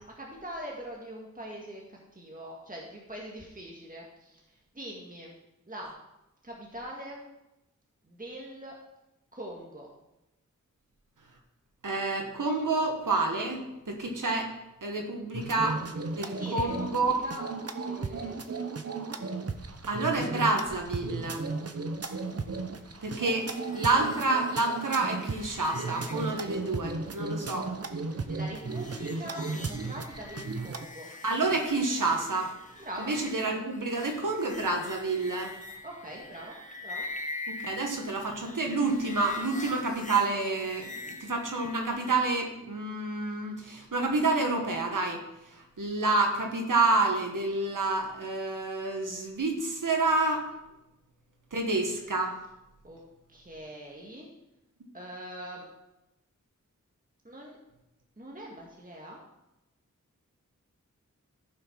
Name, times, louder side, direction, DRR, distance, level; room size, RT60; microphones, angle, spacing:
voice 1, 0.2-5.4 5.7-6.0 6.4-7.3 8.0-8.8 9.3-9.9 16.4-17.4 17.8-18.6 28.1-31.1 32.8-33.2 35.8-37.1 52.8-53.0 53.3-54.3 54.9-55.7 57.2-57.6 58.2-59.2, right 1 dB, 25° right, -2 dB, 1.8 m, -42 dB
voice 2, 11.8-14.5 14.8-15.8 16.1-17.2 19.9-21.5 23.0-23.5 23.7-27.7 31.2-32.5 33.0-35.5 37.5-50.5 51.5-52.4, right 3 dB, 80° right, 2 dB, 1.7 m, -28 dB
sound 1, 15.3-30.9, right 4 dB, 50° right, 0.8 m, -35 dB
sound 2, 23.3-42.1, left 2 dB, 25° left, 1.1 m, -45 dB
14.5 x 5.8 x 4.6 m, 0.94 s
wide cardioid pair, 55°, 31 cm